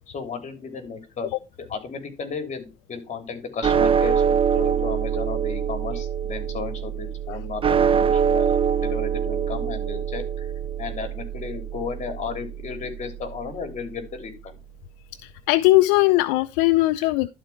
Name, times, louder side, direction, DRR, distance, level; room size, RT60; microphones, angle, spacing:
voice 1, 0.1-1.3 1.6-10.5 10.8-14.3, left 5 dB, 45° left, 3.1 m, -34 dB
sound 1, 3.6-14.0, right 7 dB, 35° right, 0.8 m, -24 dB
voice 2, 15.2-17.3, left 19 dB, 85° left, 0.4 m, -19 dB
12.0 x 4.5 x 5.8 m
supercardioid pair, 75°, 16 cm